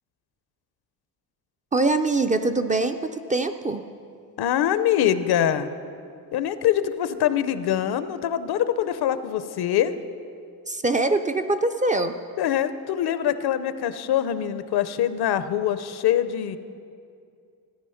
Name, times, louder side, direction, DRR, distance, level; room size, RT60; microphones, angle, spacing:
voice 1, 1.7-3.8 10.7-12.2, right 2 dB, 20° right, 7 dB, 0.3 m, -23 dB
voice 2, 4.4-5.7 6.3-9.9 12.4-16.6, left 10 dB, 75° left, 12 dB, 0.7 m, -24 dB
14.5 x 9.9 x 5.7 m, 2.4 s
cardioid pair, 150°, 39 cm